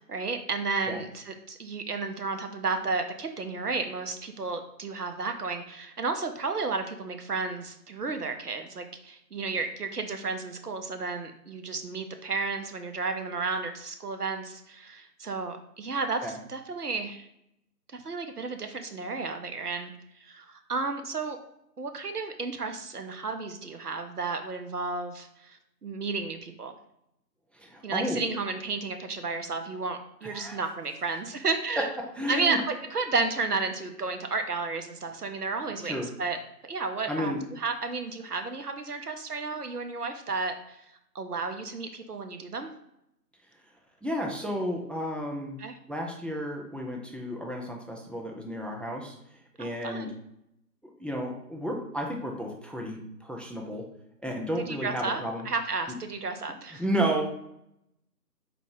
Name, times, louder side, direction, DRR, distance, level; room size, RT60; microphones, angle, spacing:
voice 1, 0.1-17.3 17.9-19.9 20.2-21.4 21.8-26.7 27.8-31.9 32.3-36.4 36.6-40.6 41.1-42.7 45.6-45.7 49.6-50.1 54.6-55.2 55.5-56.8, right 4 dB, 70° right, 6 dB, 0.7 m, -32 dB
voice 2, 27.5-28.2 30.2-30.7 31.8-32.6 35.8-36.1 37.1-37.4 44.0-45.6 45.9-49.1 49.6-50.1 51.0-53.9 54.2-55.5 56.8-57.3, equal, ahead, 1 dB, 0.4 m, -32 dB
3.9 x 2.8 x 3.5 m, 0.79 s
figure-of-eight pair, 165°, 48 cm